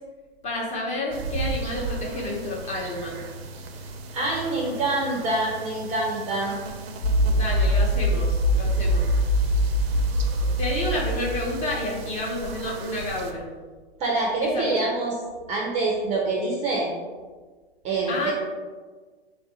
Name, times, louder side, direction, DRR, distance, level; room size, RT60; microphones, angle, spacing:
voice 1, 0.4-3.3 7.3-9.1 10.4-13.5 14.4-14.8 18.1-18.3, left 1 dB, 20° left, -3 dB, 0.8 m, -30 dB
sound 1, 1.1-13.3, right 3 dB, 70° right, 0.6 m, -37 dB
voice 2, 4.1-6.6 14.0-15.2 15.5-16.9 17.8-18.3, right 2 dB, 20° right, -2 dB, 0.5 m, -25 dB
sound 2, 7.0-11.9, equal, 70° left, 0.7 m, -23 dB
3.5 x 2.5 x 4.1 m, 1.4 s
hypercardioid pair, 125°, 31 cm